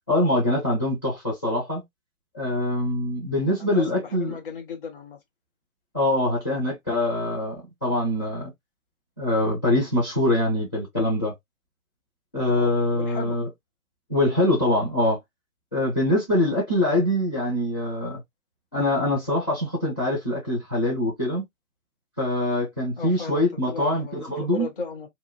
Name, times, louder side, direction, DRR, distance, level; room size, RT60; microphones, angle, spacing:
voice 1, 0.1-1.8 2.3-4.4 5.9-8.5 9.2-11.3 12.3-13.5 14.1-15.2 15.7-18.2 18.7-21.4 22.2-24.7, left 1 dB, 10° left, 0.5 m, -24 dB
voice 2, 3.6-5.2 12.5-13.4 23.0-25.1, left 4 dB, 40° left, 1.0 m, -36 dB
2.6 x 2.1 x 2.8 m
figure-of-eight pair, 135°, 43 cm